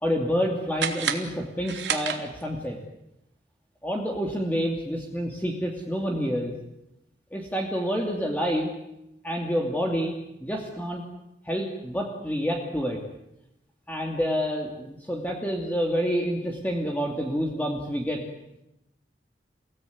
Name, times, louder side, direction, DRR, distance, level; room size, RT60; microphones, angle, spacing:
voice 1, 0.0-2.8 3.8-6.5 7.3-8.7 9.2-11.0 11.4-13.0 13.9-18.2, equal, 10° left, 0 dB, 2.7 m, -28 dB
sound 1, 0.7-2.7, right 7 dB, 80° right, 3.0 m, -31 dB
30.0 x 18.5 x 9.6 m, 0.89 s
head